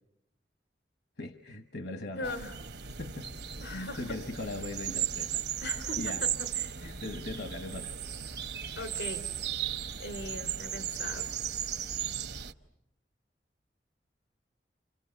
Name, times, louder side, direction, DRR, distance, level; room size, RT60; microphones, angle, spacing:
voice 1, 1.2-2.4 3.0-3.3 3.7-6.4 6.8-8.0, left 2 dB, 65° left, 7 dB, 1.2 m, -40 dB
voice 2, 2.2-2.5 3.6-4.0 5.6-6.1 6.6-7.0 8.8-9.3 10.0-11.3, left 2 dB, 85° left, 7 dB, 3.3 m, -40 dB
sound 1, 2.2-12.5, right 9 dB, 70° right, 1.1 m, -36 dB
29.0 x 29.0 x 7.0 m, 0.85 s
head